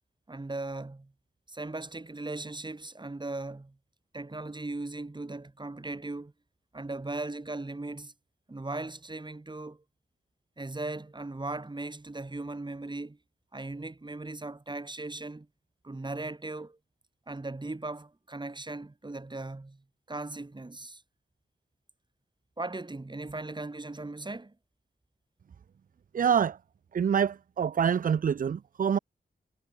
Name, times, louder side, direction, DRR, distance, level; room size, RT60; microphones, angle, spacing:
voice 1, 0.3-1.1 1.5-3.8 4.1-6.3 6.7-8.1 8.5-9.8 10.6-13.2 13.5-15.5 15.8-16.8 17.3-19.8 20.1-21.0 22.6-24.5, right 2 dB, 25° right, 3.4 m, -38 dB
voice 2, 26.1-26.6 26.9-29.0, right 7 dB, 50° right, 0.5 m, -26 dB
cardioid pair, 75°, 18 cm